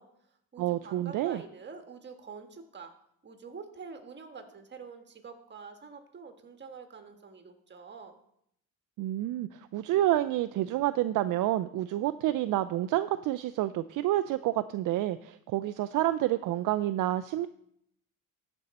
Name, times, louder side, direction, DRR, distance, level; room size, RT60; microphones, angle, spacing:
voice 1, 0.0-2.9 3.2-8.1, right 5 dB, 30° right, 6 dB, 1.5 m, -47 dB
voice 2, 0.6-1.4 9.0-17.5, right 14 dB, 65° right, 13 dB, 0.5 m, -29 dB
14.0 x 5.4 x 4.2 m, 0.73 s
cardioid pair, 100°, 35 cm